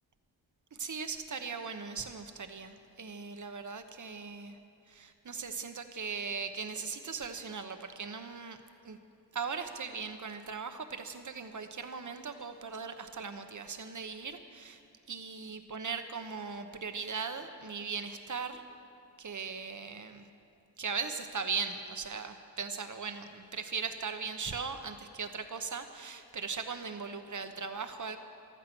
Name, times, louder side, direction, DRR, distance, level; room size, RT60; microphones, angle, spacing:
voice 1, 0.7-4.6 4.9-8.6 8.8-9.0 9.3-14.8 15.1-18.6 19.2-20.3 20.8-28.2, right 5 dB, 45° right, 8 dB, 1.0 m, -39 dB
15.0 x 13.0 x 6.1 m, 2.4 s
wide cardioid pair, 140°, 42 cm